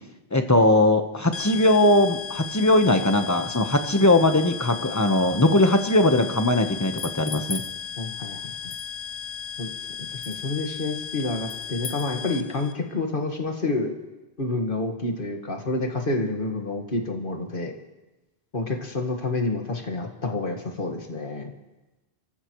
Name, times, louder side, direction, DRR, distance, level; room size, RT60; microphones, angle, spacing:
voice 1, 0.3-7.6, left 1 dB, 15° left, 6 dB, 1.1 m, -20 dB
sound 1, 1.3-12.7, left 7 dB, 90° left, 1.1 m, -36 dB
sound 2, 6.8-7.7 8.7-8.9 10.2-10.4 11.5-12.1, left 5 dB, 75° left, 1.5 m, -36 dB
voice 2, 8.0-8.5 9.6-9.7 10.0-13.9 14.4-17.8 18.5-21.5, left 2 dB, 55° left, 3 dB, 1.8 m, -28 dB
28.5 x 14.5 x 3.1 m, 1.1 s
omnidirectional pair, 1.1 m